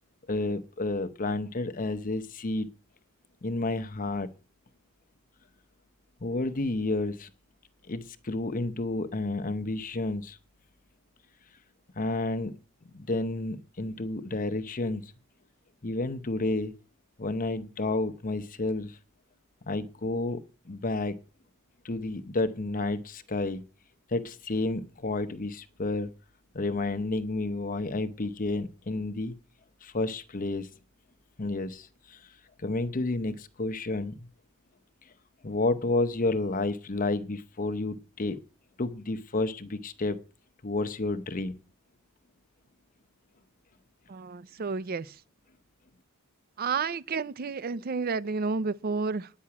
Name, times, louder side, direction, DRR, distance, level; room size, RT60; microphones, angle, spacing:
voice 1, 0.3-2.7 3.4-4.3 6.2-7.3 7.9-10.4 12.0-12.5 12.9-15.1 15.8-16.7 17.2-19.0 19.7-21.2 21.8-23.7 24.1-26.1 26.5-29.3 29.8-30.7 31.4-32.2 32.6-34.3 35.4-38.4 38.8-40.2 40.6-41.6, left 2 dB, 40° left, 0.8 m, -30 dB
voice 2, 44.1-45.2 46.6-49.3, right 4 dB, 45° right, 0.5 m, -31 dB
10.0 x 5.9 x 8.5 m
head